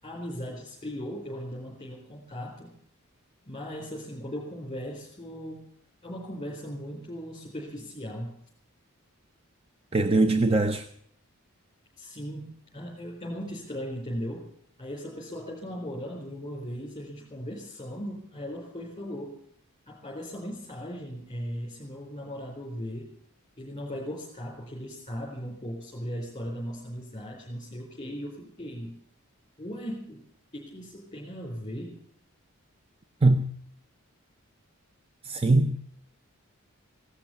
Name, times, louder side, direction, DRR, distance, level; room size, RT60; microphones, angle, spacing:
voice 1, 0.0-2.7 3.5-5.6 6.0-8.4 12.0-14.5 14.8-19.4 19.9-23.1 23.6-28.9 29.6-30.2 30.5-32.0, equal, 20° left, 4.4 m, -38 dB
voice 2, 9.9-10.9 33.2-33.5 35.2-35.8, right 2 dB, 25° right, 0.6 m, -21 dB
17.0 x 12.0 x 7.0 m
head